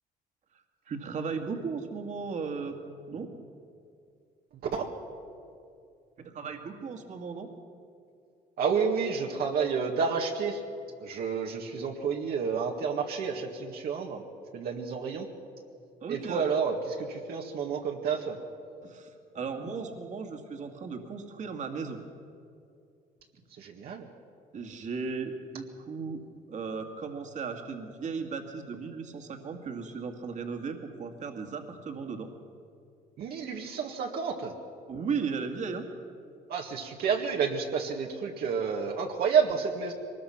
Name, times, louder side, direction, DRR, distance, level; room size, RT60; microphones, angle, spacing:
voice 1, 0.5-2.8 3.1-3.3 6.2-7.5 16.0-16.4 18.8-22.0 24.5-26.2 26.5-32.3 34.9-35.9, right 5 dB, 45° right, 4 dB, 2.2 m, -36 dB
voice 2, 8.6-10.6 11.0-14.2 14.5-15.3 16.1-18.4 23.6-24.1 33.2-34.5 36.5-39.9, right 6 dB, 65° right, 0 dB, 1.9 m, -30 dB
22.5 x 20.0 x 5.9 m, 2.5 s
cardioid pair, 110°, 17 cm